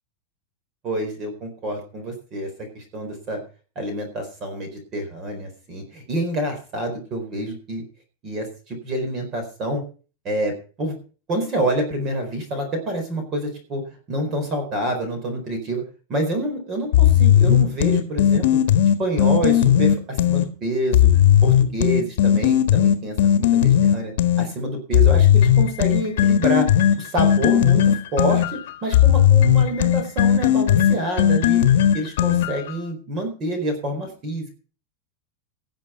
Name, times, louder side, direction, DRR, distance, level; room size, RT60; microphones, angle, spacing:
voice 1, 0.8-2.5 2.7-3.4 3.8-7.8 8.2-9.8 10.2-11.0 11.3-13.8 14.1-15.8 16.1-18.5 19.0-21.1 21.4-24.1 24.4-26.7 27.0-31.6 31.9-34.5, right 1 dB, 25° right, 6 dB, 4.4 m, -27 dB
sound 1, 16.9-20.5 20.9-24.5 24.9-32.7, left 10 dB, 65° left, 1.6 m, -16 dB
18.0 x 7.4 x 5.8 m, 0.36 s
supercardioid pair, 180°, 0 cm